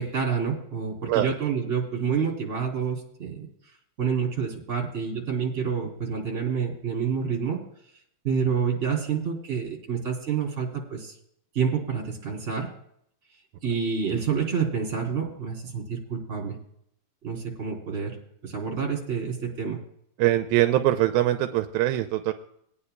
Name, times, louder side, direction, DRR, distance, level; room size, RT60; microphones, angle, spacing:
voice 1, 0.0-3.5 4.0-7.6 8.2-11.1 11.5-12.7 13.6-16.6 17.2-19.8, right 6 dB, 20° right, -2 dB, 3.1 m, -28 dB
voice 2, 20.2-22.3, right 14 dB, 85° right, 7 dB, 2.3 m, -22 dB
21.0 x 9.7 x 2.3 m, 0.71 s
omnidirectional pair, 4.3 m